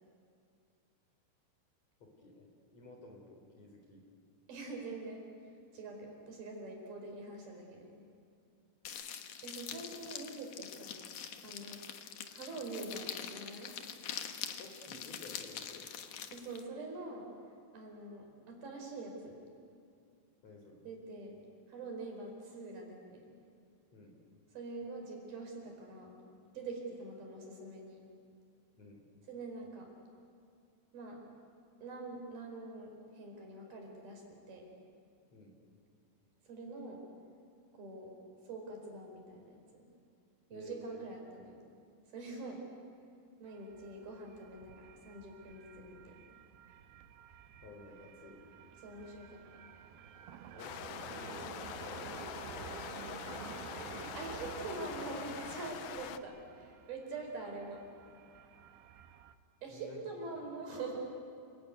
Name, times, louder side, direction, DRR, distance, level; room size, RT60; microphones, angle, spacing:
voice 1, 2.0-4.0 14.6-15.9 20.4-20.8 23.9-24.2 28.8-29.0 35.3-35.5 40.5-41.0 47.6-48.4 50.5-51.4 51.7-52.1 53.0-54.1 59.7-60.0, left 3 dB, 40° left, 1 dB, 4.9 m, -53 dB
voice 2, 4.5-5.3 5.7-7.9 9.4-11.0 11.4-11.8 12.3-13.7 16.3-17.3 17.7-19.4 20.8-21.4 21.7-23.2 24.5-26.2 26.5-28.0 29.3-29.9 30.9-31.2 31.8-34.7 36.4-37.0 37.7-38.2 38.5-39.8 40.5-41.6 42.1-42.6 43.4-46.2 48.8-49.6 54.1-57.8 59.6-61.0, right 3 dB, 60° right, 1 dB, 6.3 m, -45 dB
sound 1, 8.8-16.6, left 8 dB, 65° left, 2.1 m, -44 dB
sound 2, 43.5-59.3, right 8 dB, 75° right, 2.9 m, -51 dB
sound 3, 50.6-56.2, left 11 dB, 80° left, 2.0 m, -44 dB
29.5 x 21.0 x 9.6 m, 2.3 s
omnidirectional pair, 5.0 m